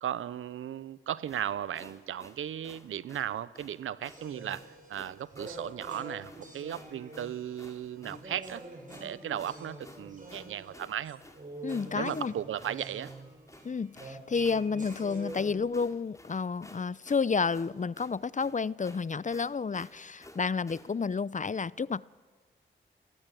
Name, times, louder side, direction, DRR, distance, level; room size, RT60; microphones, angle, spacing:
voice 1, 0.0-8.6 9.0-11.2 11.9-13.1, right 10 dB, 90° right, 18 dB, 0.7 m, -36 dB
sound 1, 1.2-20.9, left 1 dB, 15° left, 3.3 m, -53 dB
sound 2, 4.0-15.6, right 2 dB, 40° right, 7.6 m, -46 dB
voice 2, 11.6-12.3 13.6-22.0, left 5 dB, 40° left, 21 dB, 0.6 m, -30 dB
29.0 x 14.5 x 9.2 m, 1.4 s
supercardioid pair, 40°, 20 cm